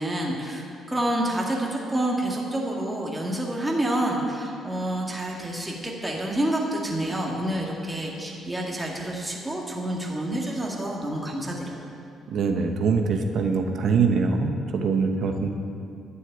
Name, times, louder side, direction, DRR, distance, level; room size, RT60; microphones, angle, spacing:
voice 1, 0.0-11.8, right 1 dB, 10° right, -2 dB, 2.0 m, -28 dB
voice 2, 12.3-15.5, right 5 dB, 70° right, 4 dB, 1.0 m, -23 dB
11.0 x 6.5 x 9.2 m, 2.5 s
cardioid pair, 90°, 0 cm